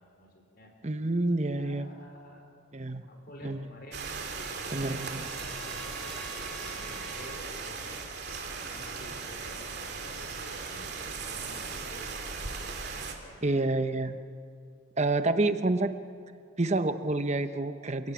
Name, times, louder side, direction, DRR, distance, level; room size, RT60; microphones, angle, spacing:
voice 1, 0.0-0.7 1.5-2.4 3.1-4.1 4.5-8.0 8.5-13.6, equal, 45° left, 3 dB, 4.4 m, -51 dB
voice 2, 0.8-1.9 2.7-3.1 3.4-3.7 4.7-5.3 13.4-14.2 15.0-15.9 16.6-18.1, right 2 dB, 30° right, 9 dB, 0.9 m, -28 dB
Trumpet, 3.7-7.5, equal, ahead, 1.2 m, -50 dB
sound 1, 3.9-13.1, right 4 dB, 50° right, 2.8 m, -38 dB
28.0 x 17.0 x 8.7 m, 2.4 s
head